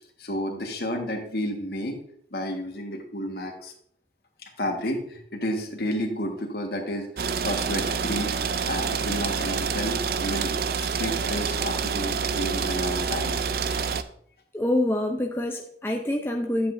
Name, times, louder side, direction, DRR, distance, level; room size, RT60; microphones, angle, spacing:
voice 1, 0.2-2.0 2.3-3.7 4.4-8.3 8.6-13.4, equal, 60° left, 2 dB, 1.5 m, -31 dB
sound 1, 7.2-14.0, right 6 dB, 55° right, 0.4 m, -27 dB
voice 2, 14.5-16.7, left 1 dB, 15° left, 1 dB, 0.5 m, -26 dB
10.0 x 8.0 x 2.6 m, 0.67 s
head